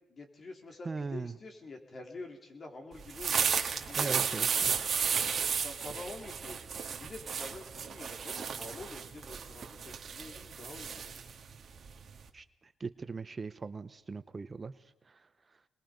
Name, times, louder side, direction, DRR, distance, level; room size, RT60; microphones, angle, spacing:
voice 1, 0.1-4.2 5.5-6.6 7.0-11.1, left 2 dB, 40° left, 2 dB, 3.9 m, -47 dB
voice 2, 0.8-1.4 3.9-4.7 12.3-12.4 12.8-14.7 15.1-15.2, right 4 dB, 30° right, 13 dB, 0.8 m, -39 dB
sound 1, 3.0-12.3, right 6 dB, 45° right, 2.0 m, -33 dB
25.0 x 21.0 x 5.3 m, 0.94 s
cardioid pair, 90°, 0 cm